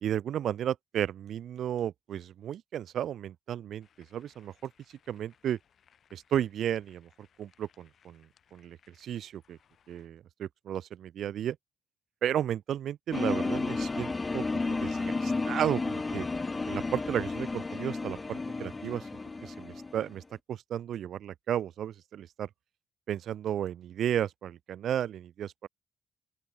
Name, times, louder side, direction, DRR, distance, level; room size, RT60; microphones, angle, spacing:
voice 1, 0.0-4.7 5.1-5.6 6.1-7.1 7.4-8.3 8.5-9.6 9.9-11.6 12.2-16.3 16.7-19.1 19.4-22.5 23.1-25.7, right 10 dB, 70° right, 0.6 m, -33 dB
sound 1, 3.8-10.1, left 8 dB, 55° left, 7.3 m, -67 dB
sound 2, 13.1-20.1, left 3 dB, 25° left, 1.2 m, -32 dB
open air
cardioid pair, 90°, 0 cm